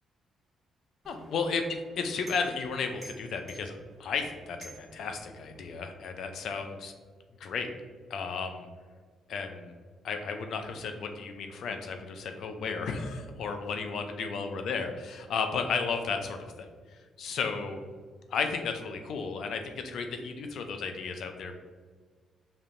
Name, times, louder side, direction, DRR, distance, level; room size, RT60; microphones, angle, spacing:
sound 1, 1.0-5.7, right 1 dB, 15° right, 1.4 m, -52 dB
voice 1, 1.1-6.9 7.4-7.7 8.1-8.7 9.3-9.7 10.0-16.7 17.2-17.8 18.3-21.6, left 5 dB, 70° left, 6 dB, 0.5 m, -33 dB
5.2 x 2.8 x 2.5 m, 1.5 s
cardioid pair, 90°, 0 cm